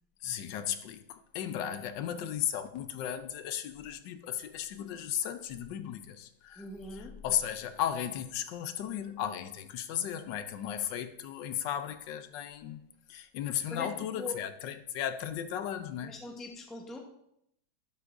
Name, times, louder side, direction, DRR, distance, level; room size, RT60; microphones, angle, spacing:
voice 1, 0.2-16.2, left 10 dB, 90° left, 1.4 m, -35 dB
voice 2, 6.6-7.2 13.7-13.9 14.2-14.4 16.0-17.0, left 2 dB, ahead, 0.5 m, -41 dB
11.0 x 8.0 x 2.6 m
omnidirectional pair, 1.9 m